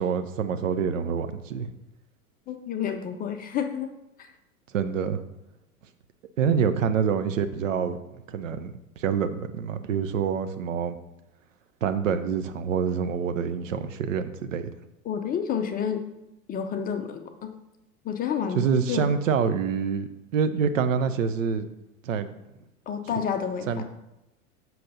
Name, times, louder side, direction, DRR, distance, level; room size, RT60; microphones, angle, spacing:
voice 1, 0.0-1.7 4.7-5.2 6.4-8.0 8.3-11.0 11.8-14.7 18.5-21.7 22.0-22.3 23.7-23.8, right 6 dB, 60° right, 10 dB, 0.9 m, -26 dB
voice 2, 2.5-3.9 4.2-4.3 15.0-16.0 16.5-17.5 18.0-19.2 22.9-23.8, left 7 dB, 20° left, 6 dB, 0.7 m, -30 dB
7.6 x 6.0 x 5.4 m, 0.91 s
figure-of-eight pair, 90°, 44 cm